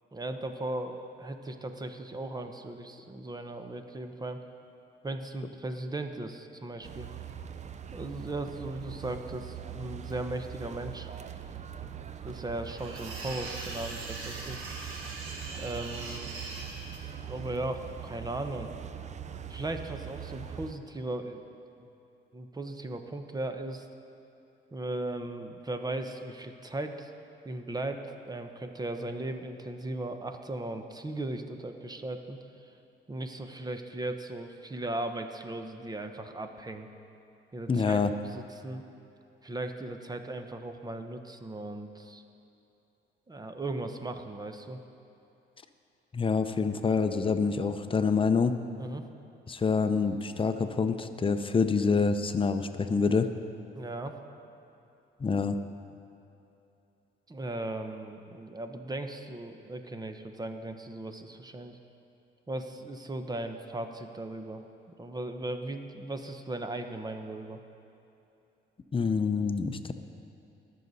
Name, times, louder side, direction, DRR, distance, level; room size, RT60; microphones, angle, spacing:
voice 1, 0.1-4.4 5.0-7.1 7.9-11.1 11.8-12.0 12.2-14.6 15.6-16.3 17.3-18.7 19.5-21.4 21.8-21.9 22.3-23.8 24.7-27.1 27.4-32.4 33.1-36.9 37.5-38.0 38.2-38.8 39.4-42.2 43.3-44.8 48.8-49.1 53.7-54.2 57.3-61.8 62.5-64.6 65.0-67.6, right 2 dB, 20° right, 6 dB, 0.9 m, -37 dB
sound 1, 6.8-20.7, right 9 dB, 35° right, 0.5 m, -42 dB
sound 2, 12.7-17.0, right 2 dB, 80° right, 1.5 m, -41 dB
voice 2, 37.7-38.1 46.1-48.6 49.5-53.3 55.2-55.6 68.9-69.9, left 5 dB, 25° left, 9 dB, 0.6 m, -26 dB
19.5 x 6.6 x 4.1 m, 2.8 s
cardioid pair, 90°, 20 cm